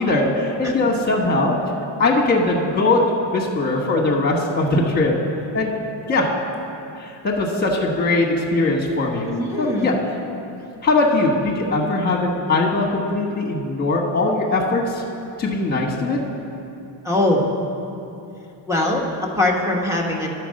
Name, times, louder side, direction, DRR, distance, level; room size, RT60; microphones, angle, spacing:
voice 1, 0.0-1.6 2.0-3.0 3.3-5.2 5.5-5.7 6.1-6.3 7.0-9.3 9.6-9.9 10.8-15.0 15.4-16.2, left 2 dB, 20° left, -1 dB, 1.2 m, -20 dB
voice 2, 9.3-10.0 17.0-17.4 18.7-19.0 19.4-20.3, left 1 dB, 5° right, -1 dB, 1.1 m, -21 dB
11.0 x 4.6 x 6.4 m, 2.8 s
cardioid pair, 135°, 43 cm